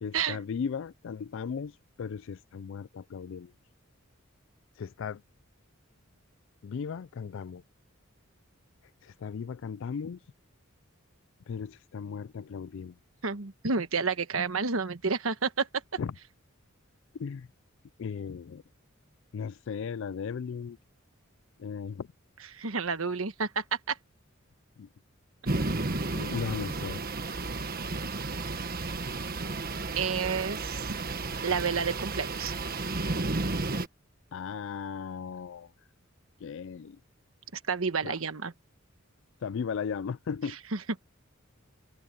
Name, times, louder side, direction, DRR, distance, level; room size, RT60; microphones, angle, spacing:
voice 1, 0.0-1.7 2.0-3.5 4.8-5.2 6.6-7.6 9.0-10.2 11.5-12.9 16.0-16.1 17.2-17.5 18.0-18.6 19.3-20.8 21.6-22.1 24.8-24.9 26.1-27.0 34.3-35.7 36.4-37.0 38.0-38.1 39.4-40.6, left 6 dB, 60° left, 0.4 m, -36 dB
voice 2, 13.2-15.7 22.5-24.0 29.9-31.0 31.4-32.5 37.5-38.5 40.7-40.8, right 5 dB, 75° right, 1.3 m, -30 dB
sound 1, 25.4-33.9, right 3 dB, 45° right, 1.4 m, -32 dB
head